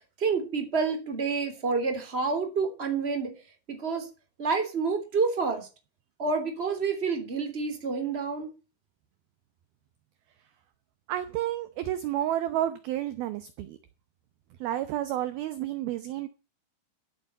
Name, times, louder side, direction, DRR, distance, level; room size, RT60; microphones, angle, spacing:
voice 1, 0.2-3.3 3.7-4.1 4.4-5.7 6.2-8.5, right 4 dB, 15° right, 2.6 m, -28 dB
voice 2, 11.1-13.8 14.6-16.3, right 12 dB, 75° right, 2.4 m, -30 dB
15.0 x 8.0 x 5.5 m
omnidirectional pair, 5.2 m